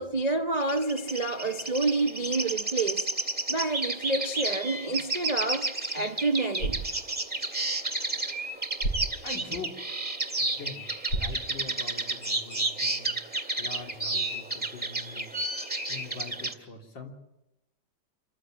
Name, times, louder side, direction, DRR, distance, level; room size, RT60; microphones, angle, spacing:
voice 1, 0.0-3.1 3.5-6.8, right 2 dB, 45° right, 0.5 m, -28 dB
sound 1, 0.6-16.5, right 2 dB, 5° right, 1.9 m, -32 dB
sound 2, 6.4-12.4, right 2 dB, 60° left, 6.5 m, -38 dB
voice 2, 9.2-10.0 10.4-13.2 13.6-15.3 15.9-17.1, left 4 dB, 80° left, 3.8 m, -43 dB
27.5 x 14.5 x 8.9 m
omnidirectional pair, 2.0 m